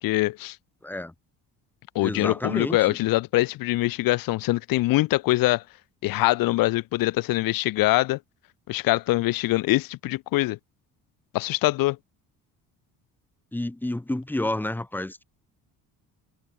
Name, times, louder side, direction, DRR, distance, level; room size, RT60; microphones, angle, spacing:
voice 1, 0.0-0.6 1.9-5.6 6.0-8.2 8.7-10.6 11.3-12.0, left 18 dB, 75° left, 2.8 m, -23 dB
voice 2, 0.8-1.1 2.0-3.0 13.5-15.2, left 1 dB, 5° left, 6.3 m, -30 dB
cardioid pair, 170°, 35 cm